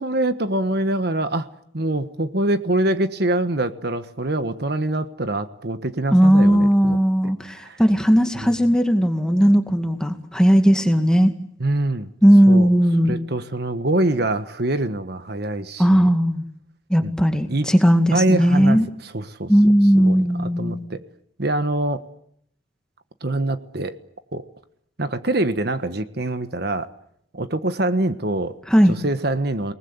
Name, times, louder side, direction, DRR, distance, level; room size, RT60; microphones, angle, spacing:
voice 1, 0.0-1.5 1.7-7.0 7.5-7.8 8.4-8.5 11.6-12.1 12.5-12.7 13.0-16.1 17.0-17.1 17.5-17.7 18.1-19.5 19.9-21.0 21.4-22.0 23.2-24.0 24.3-24.5 25.0-26.9 27.3-28.5 28.9-29.7, right 1 dB, 55° right, 10 dB, 1.4 m, -24 dB
voice 2, 6.1-11.3 12.2-13.1 15.8-16.5 16.9-18.9 19.5-20.9 28.7-28.9, equal, 5° left, 6 dB, 2.2 m, -17 dB
29.0 x 19.5 x 9.6 m, 0.71 s
head